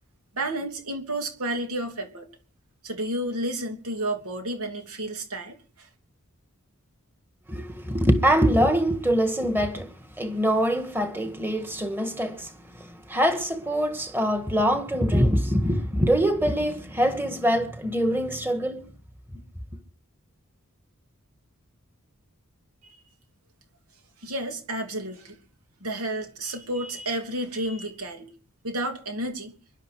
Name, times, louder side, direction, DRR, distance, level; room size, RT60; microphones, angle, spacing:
voice 1, 0.3-2.3 2.8-5.9 24.2-25.4 25.8-28.3 28.6-29.6, right 1 dB, 85° right, 2.9 m, -31 dB
voice 2, 7.5-12.5 12.8-18.9, equal, 10° right, 1.7 m, -24 dB
23.0 x 11.5 x 4.8 m
head